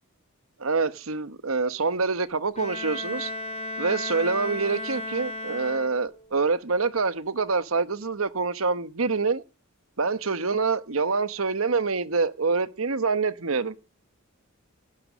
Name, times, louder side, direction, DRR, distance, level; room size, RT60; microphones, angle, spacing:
voice 1, 0.6-3.3 3.8-9.4 10.0-13.7, right 4 dB, 80° right, 1.1 m, -26 dB
Bowed string instrument, 2.6-6.3, left 2 dB, 35° left, 3.2 m, -34 dB
17.5 x 11.0 x 6.2 m
head